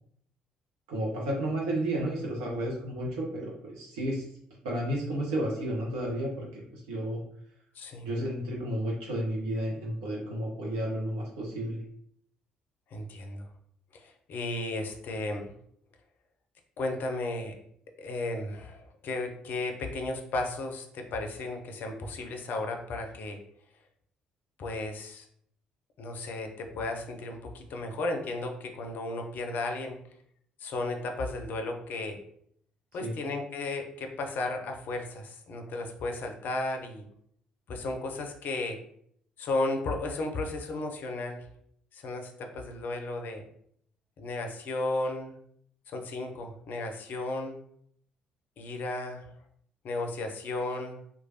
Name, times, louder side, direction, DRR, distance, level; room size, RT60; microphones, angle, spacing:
voice 1, 0.9-4.2 4.6-7.2 8.0-11.8 33.0-33.1, right 1 dB, 65° right, -3 dB, 0.6 m, -32 dB
voice 2, 7.7-8.1 12.9-13.5 13.9-15.5 16.8-17.5 18.0-23.4 24.6-25.3 26.0-30.0 30.6-32.2 32.9-37.1 37.7-38.8 39.4-41.4 41.9-43.4 44.2-45.3 45.9-47.6 48.6-49.3 49.8-51.0, left 2 dB, 50° left, 4 dB, 0.5 m, -34 dB
3.0 x 2.2 x 2.8 m, 0.68 s
figure-of-eight pair, 45°, 4 cm